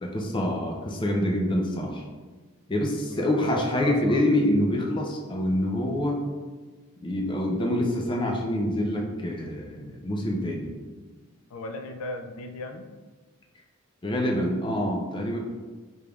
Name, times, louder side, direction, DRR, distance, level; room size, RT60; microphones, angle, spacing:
voice 1, 0.0-2.0 2.7-6.2 7.0-10.7 14.0-15.4, left 1 dB, 20° left, 0 dB, 0.4 m, -26 dB
voice 2, 3.1-4.3 11.5-12.9, left 2 dB, 85° left, 6 dB, 0.4 m, -37 dB
4.9 x 3.3 x 2.4 m, 1.3 s
head